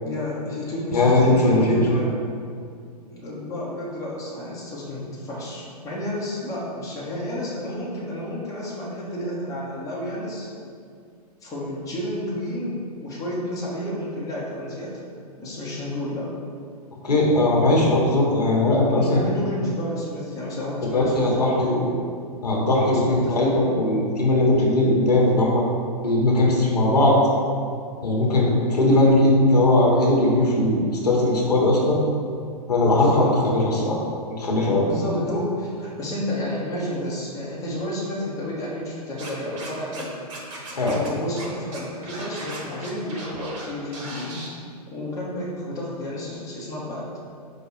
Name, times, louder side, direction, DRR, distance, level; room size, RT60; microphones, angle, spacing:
voice 1, 0.0-2.1 3.1-10.5 11.4-15.0 15.4-16.3 18.9-22.0 22.9-23.7 32.9-33.4 34.9-40.1 40.7-44.4 44.9-47.1, left 1 dB, 15° left, -6 dB, 1.0 m, -31 dB
voice 2, 0.9-2.0 17.0-19.2 20.9-21.7 22.4-25.6 26.0-27.2 28.0-32.0 32.7-34.0 34.4-34.9 40.8-41.0, left 1 dB, 80° left, -3 dB, 1.1 m, -19 dB
Scratching (performance technique), 39.2-40.0 40.3-41.1 41.4-41.5 41.7-43.6 43.9-44.5, right 2 dB, 50° right, 1.0 m, -37 dB
4.9 x 2.3 x 4.8 m, 2.3 s
figure-of-eight pair, 110°, 20 cm